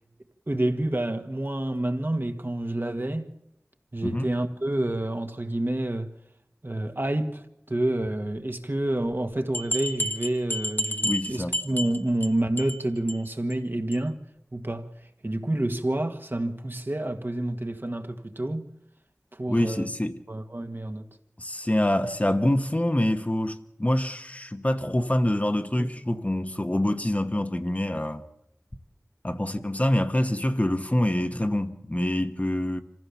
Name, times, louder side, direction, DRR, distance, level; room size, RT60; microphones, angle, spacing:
voice 1, 0.5-3.3 3.9-6.1 6.6-14.2 14.5-14.9 15.2-18.7 19.3-19.9 20.3-21.1 25.8-25.9, right 1 dB, 45° right, 1.6 m, -28 dB
sound 1, 9.5-12.3 12.6-12.8 13.1-13.2 13.5-13.6 13.9-14.0, equal, 45° left, 1.4 m, -30 dB
voice 2, 11.0-11.5 19.5-20.2 21.4-28.2 29.2-32.8, left 1 dB, 30° left, 1.2 m, -26 dB
26.0 x 15.5 x 7.1 m
wide cardioid pair, 45°, 5 cm